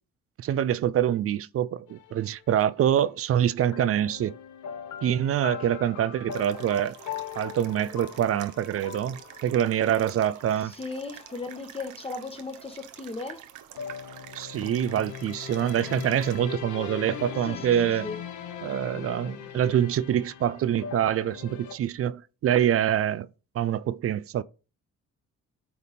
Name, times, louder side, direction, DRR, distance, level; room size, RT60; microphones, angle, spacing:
voice 1, 0.4-4.4 5.0-7.0 7.3-10.7 14.3-18.1 18.6-23.3 23.5-24.4, right 10 dB, 50° right, 0.4 m, -25 dB
sound 1, 1.9-2.9 3.7-11.8 13.8-21.8, left 9 dB, 75° left, 0.9 m, -40 dB
sound 2, 6.3-16.4, right 11 dB, 85° right, 0.9 m, -47 dB
voice 2, 10.6-13.5 17.4-18.2, left 3 dB, 20° left, 1.2 m, -37 dB
8.5 x 3.5 x 4.2 m
cardioid pair, 90°, 30 cm